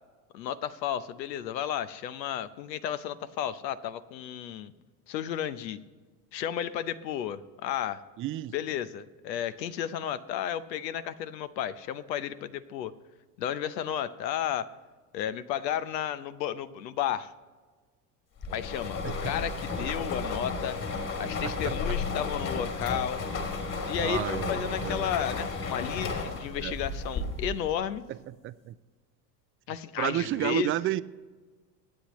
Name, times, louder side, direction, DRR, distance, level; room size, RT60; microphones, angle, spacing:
voice 1, 0.3-4.7 5.1-5.8 6.3-8.0 8.5-12.9 13.4-14.7 15.1-17.3 18.5-20.8 21.2-23.2 23.9-28.0 29.7-30.7, left 10 dB, 85° left, 14 dB, 0.8 m, -33 dB
voice 2, 8.2-8.5 19.0-19.4 21.4-21.7 24.0-25.2 26.6-26.8 28.1-28.8 30.0-31.0, right 14 dB, 30° right, 16 dB, 0.4 m, -32 dB
sound 1, 18.4-27.7, left 4 dB, 40° left, 2.9 m, -33 dB
23.0 x 8.5 x 3.1 m, 1.4 s
hypercardioid pair, 85°, 50 cm